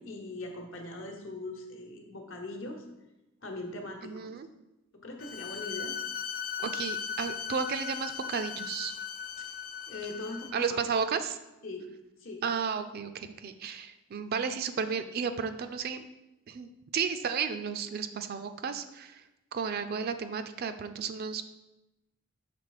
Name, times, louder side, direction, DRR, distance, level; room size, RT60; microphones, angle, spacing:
voice 1, 0.0-2.8 3.4-4.4 4.9-5.9 9.9-10.8 11.6-11.9 12.2-12.4, left 2 dB, 65° left, 2 dB, 1.1 m, -40 dB
voice 2, 4.0-4.5 6.6-8.9 10.5-11.4 12.4-16.0 16.5-19.2 19.5-21.4, right 6 dB, 45° right, 10 dB, 0.4 m, -33 dB
Bowed string instrument, 5.2-10.7, left 7 dB, 45° left, 0.3 m, -38 dB
6.0 x 3.6 x 4.8 m, 0.96 s
head